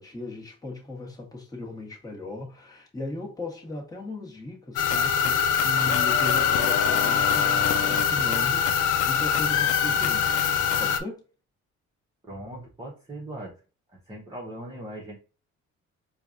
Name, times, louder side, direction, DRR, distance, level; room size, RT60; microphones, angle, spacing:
voice 1, 0.0-11.2, left 2 dB, 10° left, 1.3 m, -37 dB
sound 1, 4.8-11.0, left 7 dB, 80° left, 0.5 m, -23 dB
voice 2, 12.2-13.5 14.1-15.2, right 1 dB, 15° right, 1.0 m, -39 dB
4.5 x 2.4 x 2.6 m
cardioid pair, 90°, 30 cm